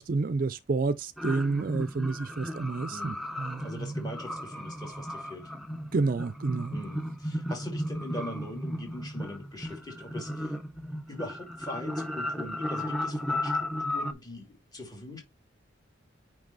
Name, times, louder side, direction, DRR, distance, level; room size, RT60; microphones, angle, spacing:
voice 1, 0.0-3.9 5.9-6.8, right 3 dB, 45° right, 0.4 m, -29 dB
sound 1, 1.2-14.1, left 1 dB, ahead, 0.6 m, -35 dB
voice 2, 3.6-5.5 6.7-10.6 10.9-15.2, left 1 dB, 20° left, 2.1 m, -42 dB
8.8 x 3.3 x 3.9 m
head